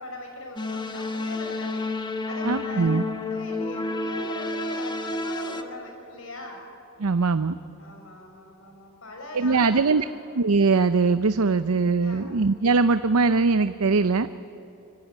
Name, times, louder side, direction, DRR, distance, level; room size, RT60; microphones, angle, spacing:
voice 1, 0.0-1.9 2.3-2.9 3.3-6.6 7.8-9.9 12.0-12.3, left 2 dB, 65° left, 2 dB, 6.4 m, -40 dB
sound 1, 0.6-5.6, left 2 dB, 20° left, 1.3 m, -30 dB
voice 2, 2.4-3.0 7.0-7.6 9.3-10.0 10.3-14.3, right 4 dB, 80° right, 12 dB, 0.7 m, -21 dB
25.0 x 24.5 x 9.5 m, 2.8 s
head